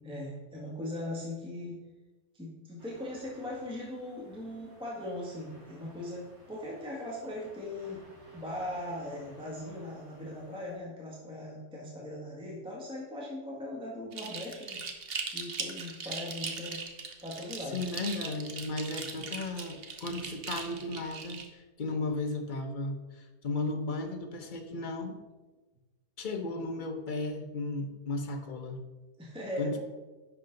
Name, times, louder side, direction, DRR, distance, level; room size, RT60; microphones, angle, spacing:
voice 1, 0.0-1.8 2.3-8.0 8.3-14.8 15.3-16.8 17.2-17.8 29.2-29.8, left 1 dB, 5° right, -4 dB, 1.5 m, -39 dB
sound 1, 2.8-10.8, equal, 85° right, 4.0 m, -57 dB
sound 2, 14.1-21.5, right 5 dB, 45° right, 0.9 m, -39 dB
voice 2, 17.7-25.2 26.2-28.8 29.6-29.8, left 2 dB, 40° left, 4 dB, 0.8 m, -35 dB
10.5 x 6.2 x 3.9 m, 1.2 s
omnidirectional pair, 1.8 m